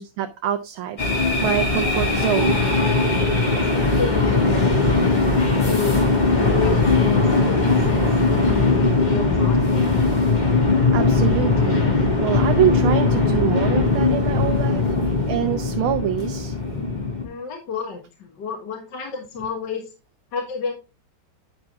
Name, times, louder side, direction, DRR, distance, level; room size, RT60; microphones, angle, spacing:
voice 1, 0.0-2.7 10.9-16.5 16.9-17.0, right 11 dB, 80° right, 6 dB, 1.6 m, -25 dB
sound 1, 1.0-17.2, left 3 dB, 20° left, 1.9 m, -19 dB
voice 2, 3.5-5.2 5.7-6.0 6.3-10.0 17.2-19.9 20.3-20.7, left 5 dB, 60° left, 2 dB, 2.1 m, -30 dB
10.0 x 5.9 x 3.5 m, 0.29 s
omnidirectional pair, 2.3 m